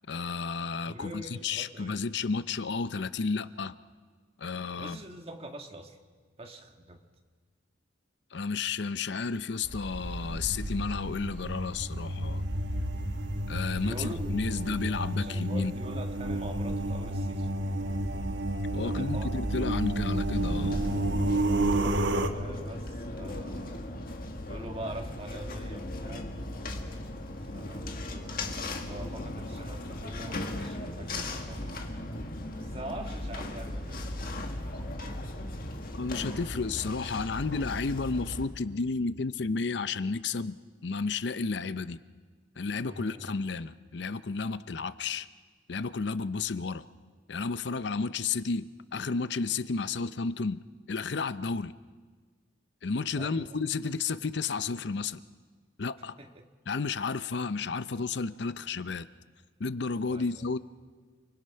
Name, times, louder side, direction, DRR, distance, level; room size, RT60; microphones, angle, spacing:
voice 1, 0.1-3.8 4.4-5.0 8.3-12.5 13.5-15.7 18.7-20.8 35.9-40.6 40.8-42.0 42.6-45.3 45.7-46.8 47.3-50.6 50.9-51.7 52.8-55.2 55.8-56.2 56.7-59.1 59.6-60.6, left 4 dB, 65° left, 14 dB, 0.6 m, -32 dB
voice 2, 0.9-2.0 4.7-6.0 6.4-7.0 13.8-14.7 15.2-17.5 18.8-19.4 22.3-23.9 24.4-26.3 27.4-28.4 28.7-32.0 32.6-34.4 42.7-43.2 53.1-53.5 56.2-56.4 60.1-60.5, right 1 dB, 30° right, 4 dB, 1.6 m, -43 dB
sound 1, 9.6-22.3, right 1 dB, 65° right, 1.2 m, -31 dB
sound 2, 20.3-38.5, left 1 dB, 50° left, 1.8 m, -38 dB
29.0 x 21.0 x 5.7 m, 1.5 s
head